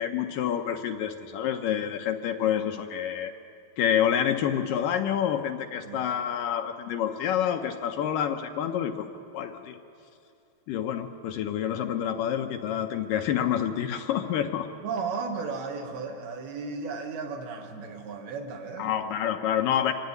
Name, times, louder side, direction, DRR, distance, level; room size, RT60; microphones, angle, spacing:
voice 1, 0.0-3.3 3.8-9.1 9.3-9.8 10.7-14.7 18.8-19.9, left 9 dB, 75° left, 5 dB, 2.2 m, -28 dB
voice 2, 14.8-19.1, right 4 dB, 85° right, 2 dB, 3.5 m, -35 dB
25.0 x 12.0 x 9.5 m, 2.6 s
omnidirectional pair, 4.3 m